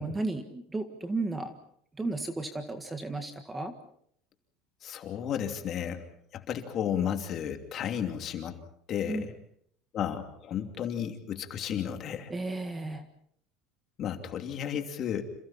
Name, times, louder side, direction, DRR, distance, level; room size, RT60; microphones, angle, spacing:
voice 1, 0.0-1.5 2.0-3.7 9.1-9.3 12.3-13.0, right 2 dB, 10° right, 7 dB, 1.7 m, -34 dB
voice 2, 4.8-6.0 6.3-8.6 8.9-9.3 9.9-12.3 14.0-15.2, left 9 dB, 35° left, 5 dB, 2.7 m, -33 dB
29.5 x 28.0 x 4.3 m, 0.66 s
cardioid pair, 165°, 0 cm